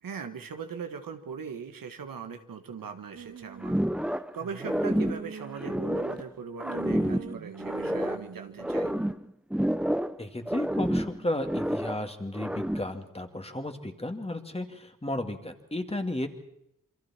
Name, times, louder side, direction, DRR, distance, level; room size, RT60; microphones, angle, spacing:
voice 1, 0.0-8.9, right 6 dB, 90° right, 7 dB, 1.5 m, -40 dB
sound 1, 3.1-3.8 4.4-6.2 6.6-9.1, right 7 dB, 50° right, 0.7 m, -44 dB
Robot Walk, 3.6-4.3 4.6-6.3 6.6-8.3 8.6-10.2 10.5-12.0 12.3-13.0, equal, 5° right, 0.7 m, -29 dB
voice 2, 10.2-16.3, left 1 dB, 20° left, 5 dB, 2.4 m, -33 dB
27.5 x 23.5 x 4.4 m, 0.79 s
cardioid pair, 55°, 33 cm